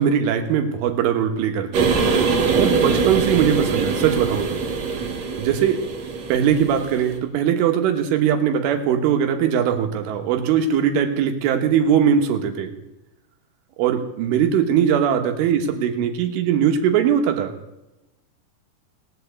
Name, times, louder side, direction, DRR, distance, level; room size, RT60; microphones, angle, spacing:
voice 1, 0.0-1.9 2.5-4.6 5.4-5.8 6.3-12.7 13.8-17.5, right 8 dB, 85° right, 5 dB, 3.9 m, -20 dB
sound 1, 1.7-7.2, right 4 dB, 55° right, 1.9 m, -23 dB
17.5 x 8.0 x 8.1 m, 0.98 s
omnidirectional pair, 5.5 m